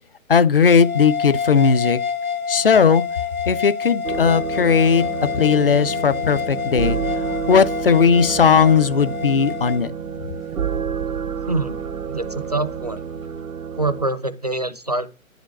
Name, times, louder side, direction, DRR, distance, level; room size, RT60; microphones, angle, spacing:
voice 1, 0.3-2.0 2.5-3.0 3.5-5.0 5.3-7.0 7.5-9.9, left 6 dB, 40° left, 0.5 m, -17 dB
sound 1, 0.8-9.8, left 7 dB, 85° left, 1.1 m, -28 dB
sound 2, 4.0-14.1, right 7 dB, 80° right, 0.7 m, -29 dB
sound 3, 4.9-13.4, left 2 dB, 65° left, 1.6 m, -43 dB
voice 2, 11.5-11.8 12.1-13.0 13.8-15.1, right 2 dB, 30° right, 0.4 m, -25 dB
9.8 x 5.1 x 6.4 m
figure-of-eight pair, 150°, 42 cm